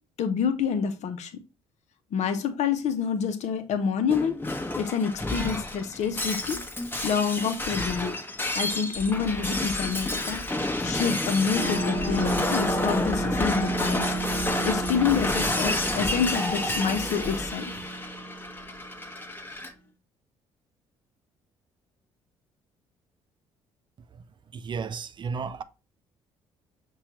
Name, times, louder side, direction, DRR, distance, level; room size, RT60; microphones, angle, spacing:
voice 1, 0.2-1.4 2.1-6.6 7.0-8.2 8.5-10.4 10.8-14.2 14.6-17.7, left 6 dB, 60° left, 0.7 m, -27 dB
Shatter, 4.1-19.7, left 1 dB, 15° left, 1.0 m, -30 dB
sound 1, 11.5-19.0, right 1 dB, 40° left, 1.4 m, -32 dB
voice 2, 24.5-25.6, right 5 dB, 35° right, 0.4 m, -33 dB
5.6 x 2.3 x 2.9 m
hypercardioid pair, 55°, 13 cm